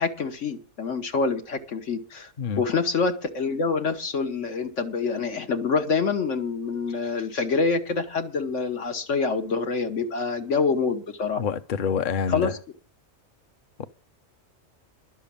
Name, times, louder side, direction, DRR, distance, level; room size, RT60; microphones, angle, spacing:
voice 1, 0.0-2.3 2.6-11.4 12.3-12.5, left 4 dB, 90° left, 1.6 m, -26 dB
voice 2, 11.4-12.5 13.8-13.9, left 6 dB, 50° left, 0.7 m, -27 dB
11.5 x 7.1 x 8.5 m
omnidirectional pair, 1.2 m